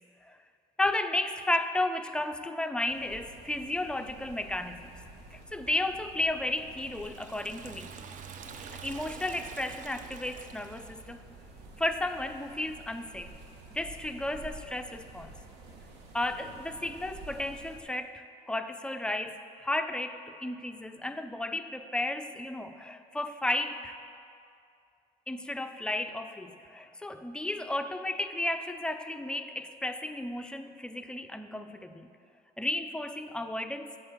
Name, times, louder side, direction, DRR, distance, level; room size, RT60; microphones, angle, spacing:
voice 1, 0.8-4.9 5.3-7.9 8.8-11.2 11.8-13.3 13.7-15.3 16.1-24.0 25.3-32.1 32.6-33.9, left 1 dB, 5° left, 8 dB, 0.3 m, -33 dB
sound 1, 2.9-17.8, right 2 dB, 90° right, 1.0 m, -50 dB
Liquid, 6.5-11.2, right 6 dB, 50° right, 0.5 m, -46 dB
8.9 x 3.6 x 6.7 m, 2.4 s
cardioid pair, 110°, 17 cm